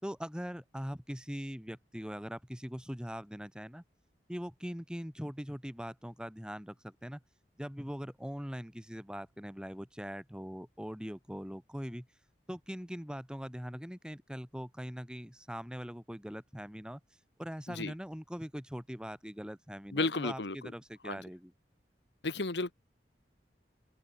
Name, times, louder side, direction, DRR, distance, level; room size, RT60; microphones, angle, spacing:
voice 1, 0.0-3.8 4.3-7.2 7.6-12.1 12.5-17.0 17.4-21.5, equal, 5° right, 3.1 m, -41 dB
voice 2, 19.9-20.5 21.0-21.2 22.2-22.7, left 3 dB, 80° left, 1.5 m, -32 dB
open air
head